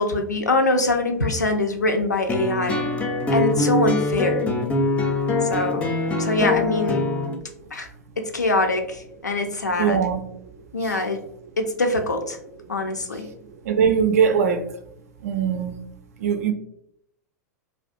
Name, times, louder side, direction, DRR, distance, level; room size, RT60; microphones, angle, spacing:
voice 1, 0.0-2.8 3.3-4.5 5.4-5.8 6.2-7.1 7.7-7.9 8.2-10.0 10.7-11.2 11.6-12.4 12.7-13.3, left 2 dB, 80° left, 0.4 m, -23 dB
sound 1, 2.3-7.3, left 2 dB, 15° left, 0.4 m, -23 dB
voice 2, 9.8-10.2 10.8-11.0 13.6-14.6 15.2-15.7 16.2-16.5, right 7 dB, 60° right, 0.3 m, -21 dB
2.3 x 2.2 x 2.5 m
figure-of-eight pair, 95°, 9 cm